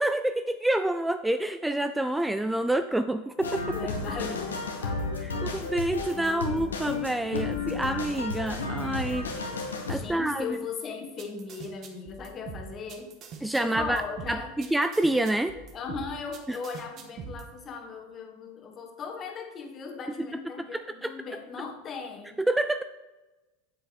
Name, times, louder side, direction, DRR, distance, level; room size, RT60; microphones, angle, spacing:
voice 1, 0.0-3.7 5.4-9.3 9.9-10.6 13.4-14.0 14.3-15.5 16.5-16.6 20.7-21.1 22.4-22.8, right 1 dB, 5° right, 10 dB, 0.4 m, -27 dB
sound 1, 3.4-9.9, left 3 dB, 90° left, 1.5 m, -33 dB
voice 2, 3.7-5.7 6.1-6.7 9.9-13.2 13.6-14.5 15.5-22.4, left 5 dB, 35° left, 3 dB, 1.8 m, -38 dB
sound 2, 11.2-17.4, right 5 dB, 45° right, 1.4 m, -42 dB
7.7 x 7.6 x 4.3 m, 1.1 s
hypercardioid pair, 90°, 0 cm